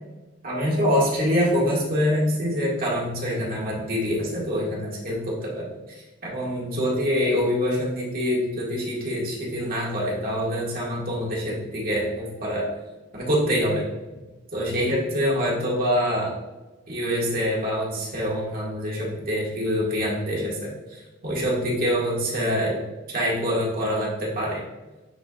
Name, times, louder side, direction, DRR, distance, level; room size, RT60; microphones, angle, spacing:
voice 1, 0.4-12.7 13.1-13.8 14.5-16.3 16.9-22.8 23.1-24.6, equal, 45° right, -4 dB, 2.0 m, -25 dB
9.4 x 4.6 x 2.4 m, 1.1 s
head